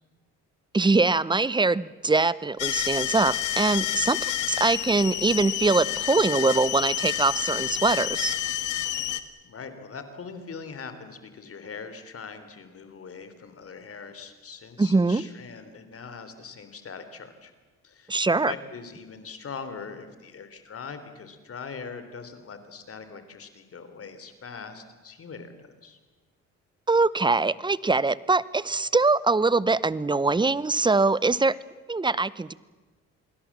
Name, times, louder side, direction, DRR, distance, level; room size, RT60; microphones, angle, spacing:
voice 1, 0.7-8.4 14.8-15.2 18.1-18.5 26.9-31.6 31.9-32.5, right 3 dB, 15° right, 19 dB, 0.8 m, -23 dB
sound 1, 2.6-9.2, left 12 dB, 80° left, 1.5 m, -29 dB
voice 2, 9.4-17.5 17.8-26.0, left 5 dB, 50° left, 10 dB, 3.5 m, -41 dB
28.0 x 21.5 x 7.4 m, 1.2 s
cardioid pair, 90°, 30 cm